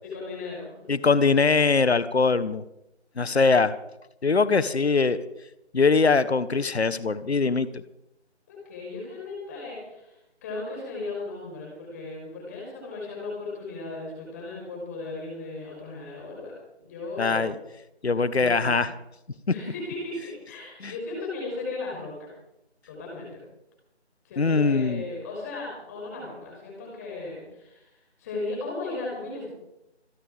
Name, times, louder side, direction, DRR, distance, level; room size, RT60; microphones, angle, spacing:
voice 1, 0.0-0.7 8.5-16.5 16.8-17.6 18.3-18.8 19.5-22.3 22.9-23.4 24.2-29.5, left 3 dB, 15° left, -2 dB, 5.3 m, -36 dB
voice 2, 0.9-2.6 3.2-3.7 4.2-5.2 5.7-7.8 17.2-17.5 18.0-18.9 20.8-20.9 24.4-25.0, left 4 dB, 65° left, 16 dB, 1.2 m, -22 dB
27.0 x 9.1 x 5.1 m, 0.86 s
figure-of-eight pair, 165°, 34 cm